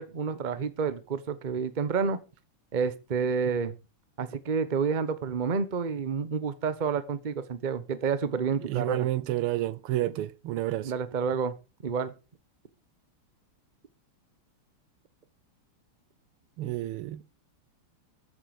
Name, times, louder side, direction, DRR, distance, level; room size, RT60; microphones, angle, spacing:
voice 1, 0.0-2.2 2.7-3.7 4.2-9.1 10.8-11.5 11.8-12.1, right 6 dB, 35° right, 0.8 m, -29 dB
voice 2, 8.7-10.9 16.6-17.2, right 15 dB, 85° right, 1.7 m, -29 dB
13.5 x 7.9 x 4.9 m
omnidirectional pair, 2.4 m